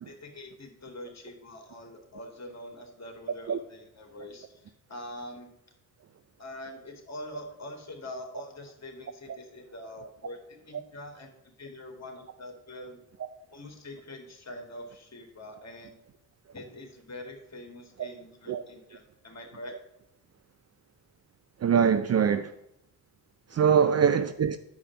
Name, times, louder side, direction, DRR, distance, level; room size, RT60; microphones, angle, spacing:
voice 1, 0.0-5.5 6.4-11.3 11.6-13.0 13.5-16.0 16.5-19.7 23.8-24.0, left 1 dB, 35° left, 2.4 m, -44 dB
voice 2, 21.6-22.5 23.5-24.6, right 7 dB, 35° right, 0.5 m, -23 dB
8.4 x 4.9 x 6.0 m
hypercardioid pair, 40°, 46 cm